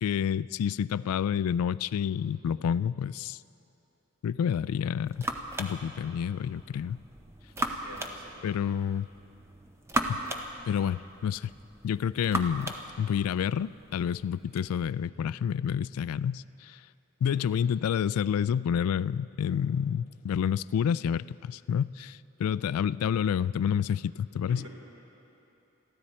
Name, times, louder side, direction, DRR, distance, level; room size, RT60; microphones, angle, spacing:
voice 1, 0.0-3.4 4.2-5.3 5.6-7.0 8.4-9.1 10.1-10.2 10.7-11.5 11.8-16.8 17.2-24.6, left 8 dB, 90° left, 18 dB, 0.3 m, -29 dB
sound 1, 4.6-14.7, right 1 dB, 10° right, 0.7 m, -38 dB
voice 2, 7.6-8.4 17.2-17.6 24.5-24.7, equal, 60° right, -2 dB, 3.4 m, -48 dB
22.5 x 14.5 x 4.3 m, 2.9 s
head